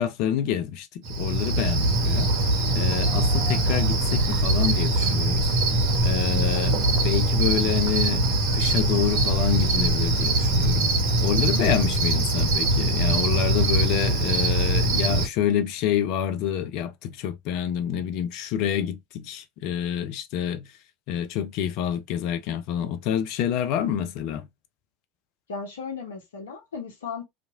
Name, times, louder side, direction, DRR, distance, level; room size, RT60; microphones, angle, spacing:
voice 1, 0.0-2.3 2.7-8.3 8.5-10.9 11.2-20.7 21.1-24.5, left 9 dB, 60° left, 0.5 m, -27 dB
Cricket, 1.0-15.3, right 2 dB, 60° right, 0.9 m, -22 dB
voice 2, 25.5-27.3, left 5 dB, 75° left, 1.0 m, -35 dB
2.8 x 2.5 x 2.5 m
hypercardioid pair, 80°, 0 cm